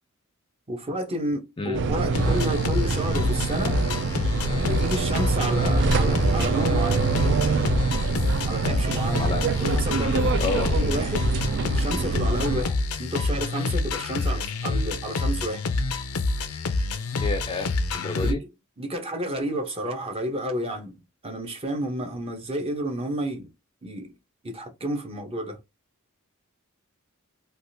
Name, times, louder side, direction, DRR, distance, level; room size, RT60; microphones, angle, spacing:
voice 1, 0.7-3.8 4.7-7.1 8.4-11.3 11.7-15.7 18.2-18.5 18.8-21.0 21.2-23.5 23.8-24.1 24.4-25.6, right 1 dB, 25° right, 0.9 m, -31 dB
sound 1, 1.7-12.6, right 4 dB, 55° right, 0.4 m, -25 dB
sound 2, 2.1-18.3, left 3 dB, 80° left, 0.5 m, -27 dB
voice 2, 9.2-9.5 10.4-10.8 17.2-18.4, left 3 dB, 25° left, 0.5 m, -30 dB
3.5 x 2.4 x 2.7 m
head